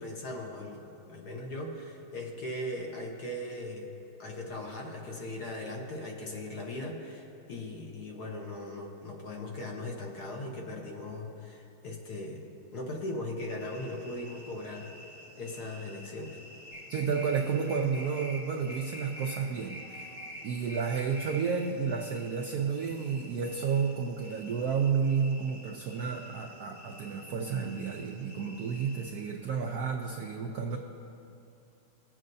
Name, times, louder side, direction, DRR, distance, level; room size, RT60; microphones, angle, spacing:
voice 1, 0.0-3.9 4.2-12.5 12.7-14.9 15.4-16.4, left 1 dB, 55° left, 0 dB, 1.4 m, -39 dB
sound 1, 13.6-29.3, equal, 15° right, 0.8 m, -51 dB
sound 2, 16.7-17.4 17.7-18.4 18.7-19.4 19.7-20.4 20.7-21.4, left 1 dB, 80° left, 2.5 m, -43 dB
voice 2, 16.9-20.1 20.4-30.8, right 6 dB, 75° right, 2 dB, 0.8 m, -31 dB
20.5 x 7.5 x 2.6 m, 2.7 s
omnidirectional pair, 2.3 m